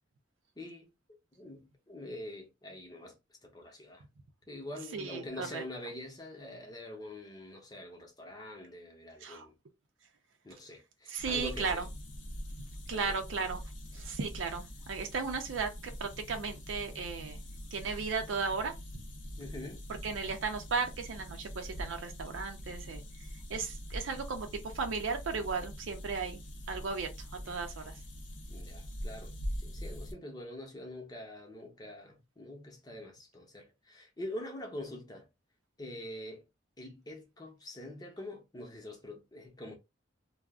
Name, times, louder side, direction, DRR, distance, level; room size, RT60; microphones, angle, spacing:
voice 1, 0.6-3.2 3.4-4.0 4.5-9.5 10.4-11.8 12.9-13.1 19.4-19.8 28.5-29.3 29.6-35.3 35.8-36.5 36.8-39.7, left 1 dB, 20° left, 0.7 m, -45 dB
voice 2, 4.9-5.6 9.2-9.4 11.1-11.9 12.9-13.6 13.9-17.4 17.7-18.7 20.0-24.5 24.7-26.4 26.7-27.1 27.5-27.9, right 5 dB, 90° right, 0.5 m, -35 dB
sound 1, 11.2-30.1, equal, 80° left, 0.7 m, -43 dB
2.4 x 2.0 x 3.4 m
head